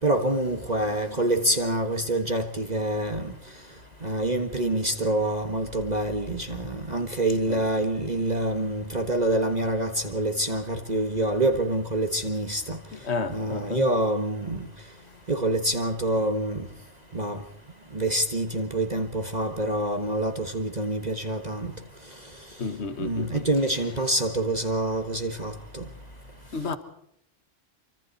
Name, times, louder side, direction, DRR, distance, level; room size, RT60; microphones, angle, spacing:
voice 1, 0.0-3.3 4.0-12.8 13.3-14.7 15.3-16.7 17.1-17.4 17.9-21.7 23.0-25.9, right 1 dB, 35° right, 1.6 m, -26 dB
voice 2, 13.1-13.8 22.6-23.4 26.5-26.8, left 4 dB, 65° left, 1.8 m, -31 dB
27.0 x 25.0 x 4.2 m
omnidirectional pair, 1.2 m